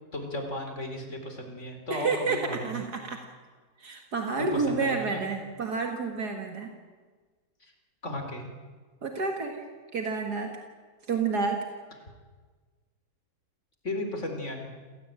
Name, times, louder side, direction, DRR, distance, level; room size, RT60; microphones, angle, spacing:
voice 1, 0.1-2.8 4.5-5.2 7.6-7.7 8.0-8.5 13.8-14.7, left 1 dB, 45° left, 4 dB, 4.3 m, -35 dB
voice 2, 1.9-3.2 3.8-6.7 9.0-9.6 9.9-10.6 11.1-11.6, right 4 dB, 75° right, 3 dB, 2.5 m, -29 dB
27.5 x 17.0 x 9.0 m, 1.4 s
omnidirectional pair, 1.7 m